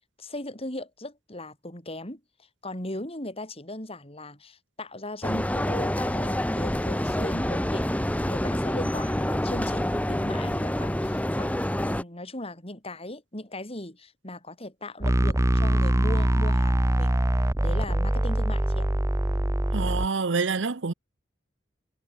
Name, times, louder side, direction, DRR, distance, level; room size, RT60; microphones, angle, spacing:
voice 1, 0.2-2.2 2.6-7.9 8.2-11.5 11.8-17.2 17.6-18.9, left 1 dB, 30° left, 7.7 m, -38 dB
sound 1, 5.2-12.0, left 1 dB, 10° left, 1.1 m, -27 dB
sound 2, 15.0-20.1, right 1 dB, 15° right, 0.7 m, -23 dB
voice 2, 19.7-20.9, right 4 dB, 85° right, 0.8 m, -27 dB
head